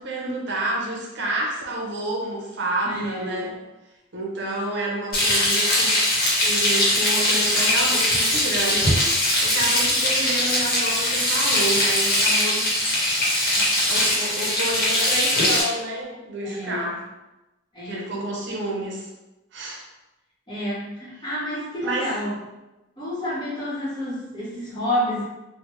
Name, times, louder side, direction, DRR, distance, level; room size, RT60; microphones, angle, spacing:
voice 1, 0.0-3.6 4.1-5.9 6.4-12.7 13.6-17.0 17.8-19.1 19.5-19.8 21.8-22.1, right 1 dB, 65° right, -2 dB, 0.7 m, -29 dB
voice 2, 2.9-3.6 16.4-16.9 17.7-18.1 20.5-22.4 23.0-25.2, left 1 dB, 25° left, -7 dB, 0.9 m, -29 dB
Frying (food), 5.1-15.6, left 1 dB, 55° left, 1.0 m, -21 dB
3.2 x 2.1 x 3.0 m, 1.0 s
head